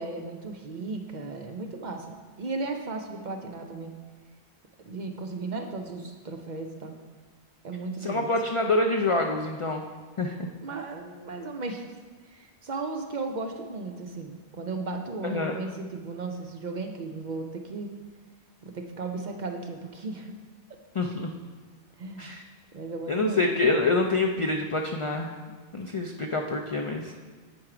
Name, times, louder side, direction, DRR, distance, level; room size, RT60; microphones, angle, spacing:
voice 1, 0.0-4.0 4.8-7.0 7.6-8.3 10.6-12.0 12.3-17.9 18.6-20.3 22.0-22.3 22.7-23.5, right 3 dB, 55° right, 4 dB, 0.6 m, -35 dB
voice 2, 8.0-9.8 10.2-10.5 15.2-15.6 20.9-21.3 22.2-22.4 23.1-25.3 25.7-27.1, left 2 dB, 55° left, 3 dB, 0.3 m, -26 dB
7.8 x 4.5 x 4.8 m, 1.5 s
omnidirectional pair, 1.1 m